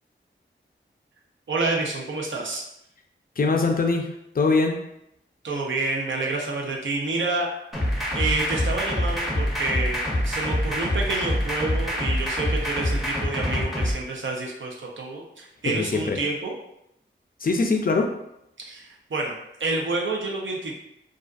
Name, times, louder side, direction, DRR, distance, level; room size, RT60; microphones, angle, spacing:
voice 1, 1.5-2.6 5.4-7.5 8.1-16.5 18.6-20.9, right 3 dB, 70° right, -2 dB, 0.6 m, -28 dB
voice 2, 3.4-4.8 15.7-16.2 17.4-18.1, left 3 dB, 45° left, 2 dB, 0.4 m, -23 dB
sound 1, 7.7-13.9, left 1 dB, ahead, 0.6 m, -25 dB
2.5 x 2.3 x 2.3 m, 0.81 s
wide cardioid pair, 80°, 21 cm